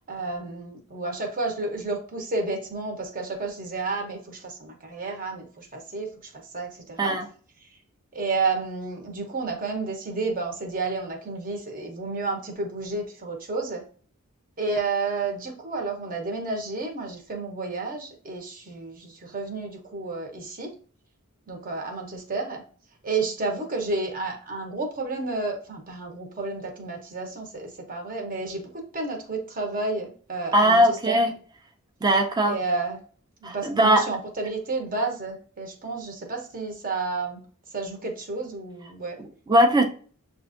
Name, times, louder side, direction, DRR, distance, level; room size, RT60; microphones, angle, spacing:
voice 1, 0.1-6.1 6.5-7.2 8.1-13.8 14.6-20.7 21.5-22.6 23.0-28.6 28.9-30.8 31.1-31.2 32.4-33.0 33.4-37.4 37.7-39.2, right 3 dB, 40° right, 2 dB, 0.9 m, -31 dB
voice 2, 30.5-31.3 32.0-32.6 33.4-34.1 39.2-39.8, equal, 20° right, 4 dB, 0.5 m, -20 dB
7.0 x 2.5 x 2.5 m, 0.42 s
head